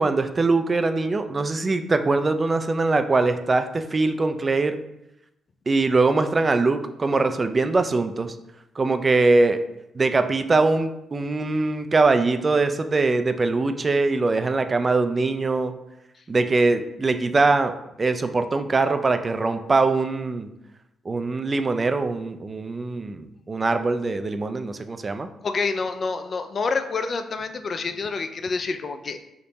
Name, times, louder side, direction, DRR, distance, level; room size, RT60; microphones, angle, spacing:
voice 1, 0.0-4.8 5.7-8.4 8.8-9.6 9.9-15.7 16.3-17.7 18.0-20.5 21.1-25.3, right 3 dB, 35° right, 9 dB, 0.3 m, -22 dB
voice 2, 25.4-29.2, left 4 dB, 50° left, 8 dB, 0.3 m, -27 dB
3.5 x 2.8 x 2.7 m, 0.86 s
hypercardioid pair, 45°, 0 cm